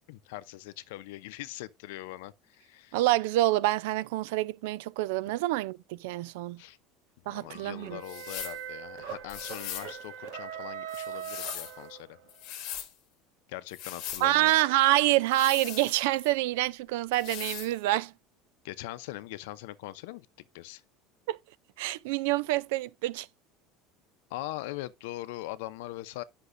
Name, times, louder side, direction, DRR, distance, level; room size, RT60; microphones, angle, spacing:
voice 1, 0.1-3.0 6.6-6.8 7.2-12.2 13.5-14.5 18.6-20.3 20.5-20.8 24.3-26.2, left 16 dB, 85° left, 0.6 m, -41 dB
voice 2, 2.9-6.6 7.3-8.0 14.2-18.1 21.3-21.4 21.8-23.3, right 16 dB, 80° right, 0.4 m, -27 dB
sound 1, 7.5-12.3, right 8 dB, 60° right, 1.5 m, -41 dB
sound 2, 8.0-8.6 9.3-9.9 10.9-11.8 12.3-12.9 13.7-14.3 15.3-16.3 17.1-17.7, left 11 dB, 50° left, 1.5 m, -40 dB
9.9 x 5.9 x 2.6 m
cardioid pair, 180°, 0 cm